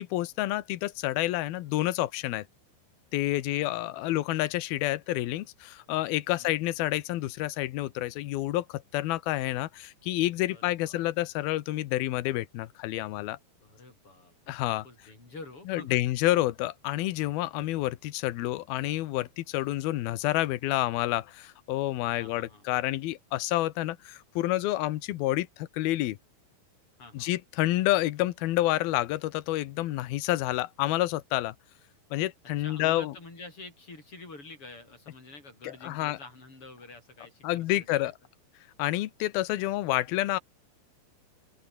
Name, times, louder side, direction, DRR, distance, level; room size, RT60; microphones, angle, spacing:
voice 1, 0.0-2.4 3.1-13.4 14.5-14.9 15.7-26.2 27.1-31.5 32.1-33.1 35.6-36.2 37.4-38.1 38.8-40.4, left 16 dB, 85° left, 2.1 m, -29 dB
voice 2, 3.6-4.2 6.4-6.6 10.5-11.1 13.6-14.3 14.8-16.0 22.2-22.6 27.0-27.3 32.6-38.1, left 3 dB, 25° left, 8.1 m, -48 dB
open air
omnidirectional pair, 5.9 m